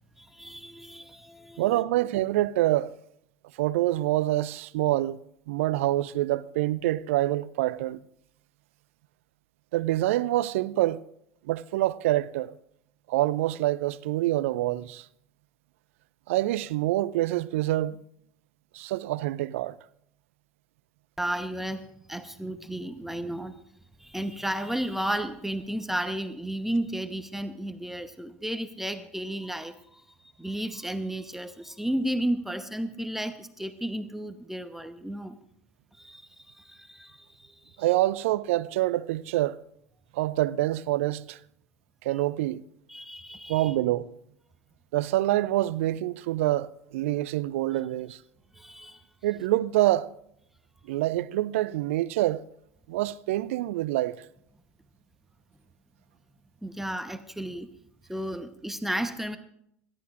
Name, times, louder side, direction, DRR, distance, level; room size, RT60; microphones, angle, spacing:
voice 1, 0.2-1.8 21.2-23.5 24.0-30.1 30.4-35.4 35.9-37.8 42.9-43.7 48.5-49.0 56.6-57.7 58.1-59.4, right 1 dB, 5° right, 1.0 m, -33 dB
voice 2, 1.6-3.0 3.6-5.2 5.5-8.0 9.7-11.0 11.5-12.5 13.1-15.1 16.3-18.0 18.7-19.8 37.8-39.6 40.1-41.4 42.0-42.6 43.5-44.1 44.9-48.2 49.2-50.1 50.9-52.4 52.9-54.2, right 15 dB, 65° right, 0.5 m, -26 dB
27.0 x 13.0 x 2.5 m
figure-of-eight pair, 75°, 8 cm